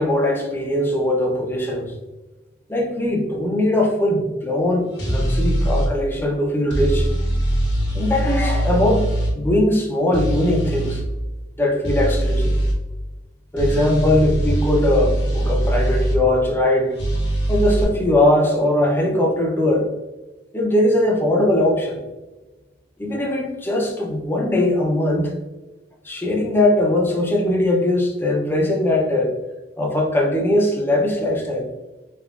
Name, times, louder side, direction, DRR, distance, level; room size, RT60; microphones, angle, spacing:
voice 1, 0.0-1.9 2.7-7.1 7.9-9.1 9.3-11.0 11.6-12.5 13.5-17.0 17.5-19.9 20.5-22.0 23.0-25.3 26.0-29.4 29.8-31.7, left 1 dB, 10° left, -1 dB, 0.6 m, -20 dB
sound 1, 5.0-5.9 6.7-9.3 10.1-11.0 11.8-12.8 13.6-16.2 17.0-17.8, right 1 dB, 70° left, 1.1 m, -21 dB
3.4 x 3.0 x 2.4 m, 1.1 s
head